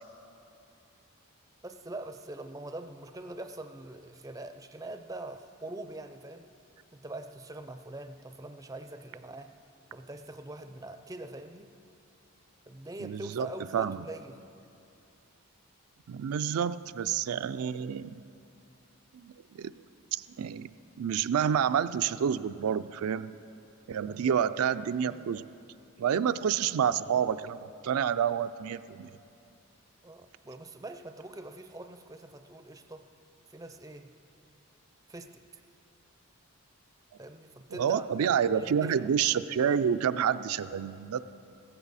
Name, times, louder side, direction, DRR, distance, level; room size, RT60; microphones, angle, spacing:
voice 1, 1.6-6.5 6.9-9.6 9.9-11.7 12.7-14.4 24.1-24.4 25.1-25.3 30.0-33.1 33.5-34.1 35.1-35.6 37.2-39.1, right 2 dB, 15° right, 8 dB, 0.4 m, -43 dB
voice 2, 13.0-13.5 13.7-14.0 16.1-18.2 19.1-19.7 20.1-20.7 21.0-23.3 23.9-25.5 26.0-29.1 37.7-41.2, right 8 dB, 85° right, 12 dB, 0.4 m, -29 dB
16.0 x 14.5 x 4.1 m, 2.7 s
head